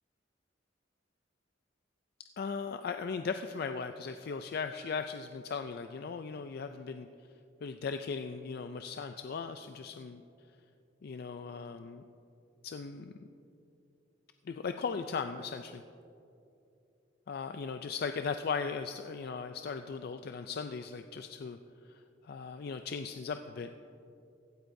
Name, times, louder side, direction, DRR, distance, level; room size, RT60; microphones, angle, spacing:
voice 1, 2.4-7.1 7.6-10.2 11.0-12.0 12.6-13.1 14.4-15.8 17.3-21.6 21.8-23.7, left 5 dB, 55° left, 7 dB, 0.4 m, -38 dB
16.0 x 12.5 x 2.7 m, 2.7 s
head